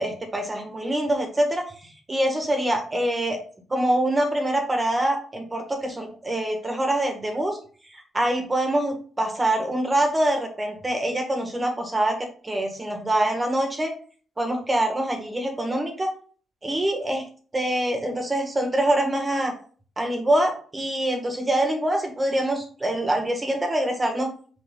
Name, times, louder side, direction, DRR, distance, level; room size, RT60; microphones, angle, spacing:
voice 1, 0.0-1.7 2.1-3.4 3.7-7.6 7.9-13.9 14.4-16.1 16.6-17.2 17.5-19.5 20.0-24.3, right 1 dB, 20° right, 3 dB, 1.7 m, -25 dB
6.1 x 4.9 x 3.8 m, 0.43 s
cardioid pair, 100°, 0 cm